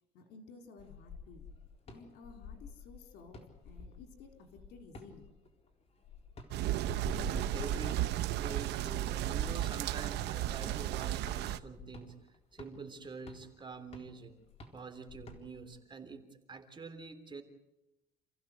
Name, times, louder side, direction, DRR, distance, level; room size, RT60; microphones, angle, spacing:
voice 1, 0.1-1.5 1.9-5.3, left 4 dB, 80° left, 5 dB, 4.2 m, -54 dB
sound 1, 0.8-15.8, left 4 dB, 35° left, 4.0 m, -50 dB
sound 2, 6.5-11.6, right 13 dB, 80° right, 1.0 m, -34 dB
voice 2, 7.2-12.2 12.5-14.3 14.7-17.4, right 4 dB, 30° right, 7 dB, 3.4 m, -46 dB
28.5 x 15.5 x 8.1 m, 0.94 s
cardioid pair, 110°, 17 cm